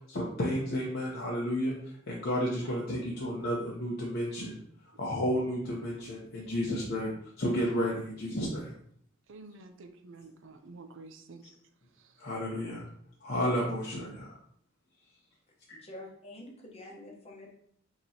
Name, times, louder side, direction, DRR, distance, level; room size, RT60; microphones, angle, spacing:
voice 1, 0.1-1.7 2.1-4.6 5.0-8.7 12.2-12.8 13.2-14.3, equal, 50° left, -4 dB, 0.8 m, -32 dB
voice 2, 9.3-11.4, right 3 dB, 65° right, 7 dB, 0.5 m, -49 dB
voice 3, 15.7-17.5, left 1 dB, 30° left, -1 dB, 1.0 m, -47 dB
5.3 x 3.0 x 2.8 m, 0.65 s
head